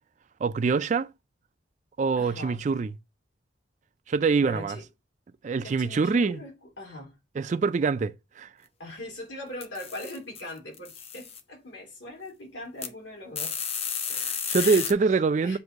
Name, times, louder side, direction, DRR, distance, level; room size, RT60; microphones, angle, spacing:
voice 1, 0.4-1.1 2.0-2.9 4.1-4.8 5.4-6.4 7.4-8.5 14.1-15.6, right 4 dB, 40° right, 0.3 m, -25 dB
voice 2, 2.2-2.6 4.4-4.8 5.6-7.1 8.8-13.6 14.5-14.9 15.4-15.6, left 1 dB, 70° left, 2.7 m, -40 dB
sound 1, 9.6-10.4 10.7-11.4 12.8-12.9 13.3-14.9, left 7 dB, 30° left, 0.6 m, -32 dB
7.8 x 2.7 x 4.7 m
head